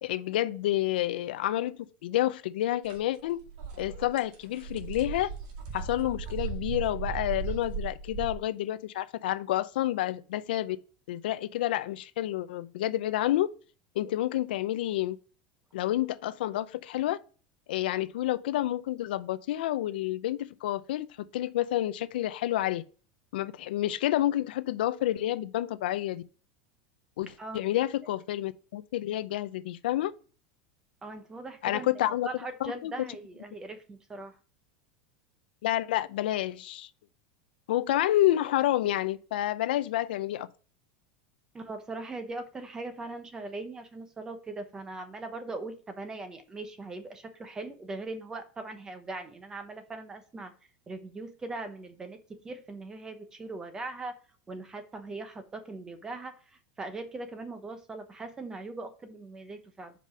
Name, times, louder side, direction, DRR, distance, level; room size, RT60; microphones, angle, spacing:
voice 1, 0.0-1.7 2.0-3.4 3.8-5.3 5.7-10.8 11.1-13.5 14.0-15.2 15.7-17.2 17.7-22.8 23.3-26.2 27.2-30.1 31.6-32.3 32.6-33.1 35.6-36.9 37.7-40.5, left 14 dB, 85° left, 0.5 m, -29 dB
sound 1, 2.8-3.0 3.3-8.4, right 6 dB, 60° right, 2.1 m, -37 dB
voice 2, 31.0-31.9 32.2-34.4 41.5-50.5 50.9-54.1 54.5-59.9, right 2 dB, 15° right, 0.9 m, -40 dB
5.1 x 5.0 x 5.4 m
supercardioid pair, 165°, 5 cm